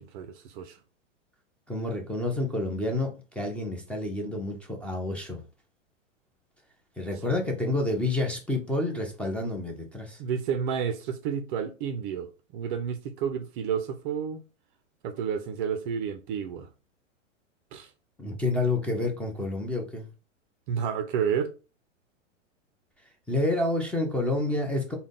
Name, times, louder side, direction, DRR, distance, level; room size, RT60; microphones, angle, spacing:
voice 1, 0.1-0.8 10.2-12.3 12.5-14.4 15.0-16.7 17.7-17.9 20.7-21.5, right 7 dB, 45° right, 0.5 m, -30 dB
voice 2, 1.7-5.4 7.0-10.2 18.2-20.0 23.3-25.0, left 2 dB, 5° left, 0.6 m, -29 dB
3.6 x 2.2 x 3.6 m
hypercardioid pair, 115°, 38 cm